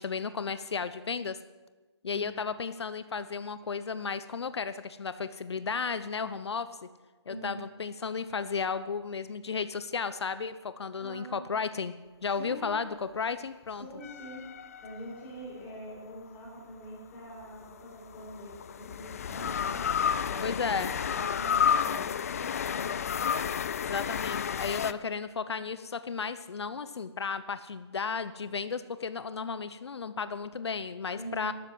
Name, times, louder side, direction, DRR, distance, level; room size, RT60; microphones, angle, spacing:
voice 1, 0.0-1.4 2.0-6.9 7.3-11.9 12.2-13.9 20.4-20.9 23.8-31.5, left 5 dB, 65° left, 13 dB, 0.8 m, -34 dB
voice 2, 7.3-7.6 11.0-11.4 12.4-12.8 13.8-14.4 14.8-19.9 20.2-20.8 21.0-23.2 24.8-24.9 31.1-31.5, equal, 15° left, -4 dB, 4.2 m, -44 dB
sound 1, 14.0-15.5 17.4-24.9, left 8 dB, 30° left, 0.4 m, -31 dB
13.5 x 12.5 x 7.5 m, 1.2 s
hypercardioid pair, 160°, 15 cm